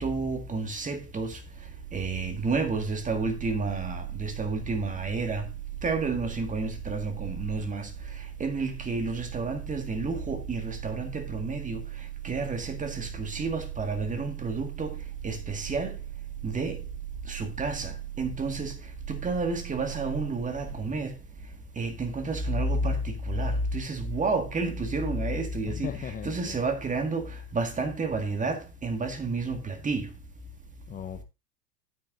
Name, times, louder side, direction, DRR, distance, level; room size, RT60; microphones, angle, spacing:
voice 1, 0.0-1.4 1.9-5.5 5.8-7.9 8.4-11.8 12.2-15.0 15.2-15.9 16.4-16.8 17.3-18.8 19.1-21.1 21.8-25.9 26.2-30.1, right 3 dB, 15° right, 1.9 m, -30 dB
voice 2, 25.7-26.6 30.9-31.2, left 8 dB, 15° left, 0.7 m, -37 dB
9.3 x 8.9 x 2.6 m
hypercardioid pair, 100°, 48 cm